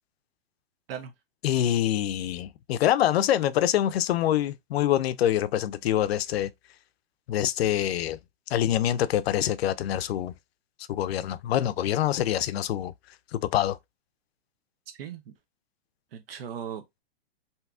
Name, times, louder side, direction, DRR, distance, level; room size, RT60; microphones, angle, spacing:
voice 1, 1.4-6.5 7.3-8.2 8.5-10.3 10.9-12.9 13.3-13.8, left 11 dB, 85° left, 0.5 m, -25 dB
voice 2, 15.0-15.3 16.1-17.0, right 8 dB, 70° right, 0.7 m, -38 dB
3.5 x 2.8 x 2.3 m
supercardioid pair, 160°, 30 cm